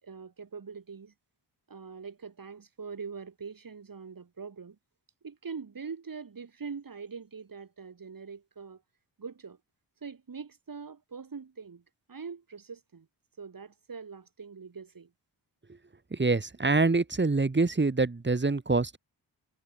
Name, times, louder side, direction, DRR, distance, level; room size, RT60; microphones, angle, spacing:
voice 1, 0.0-1.1 1.7-4.8 5.2-8.8 9.2-9.6 10.0-11.8 12.1-13.1 13.4-15.1, right 5 dB, 50° right, 5.8 m, -43 dB
voice 2, 16.1-19.0, right 3 dB, 25° right, 2.2 m, -25 dB
supercardioid pair, 40°, 42 cm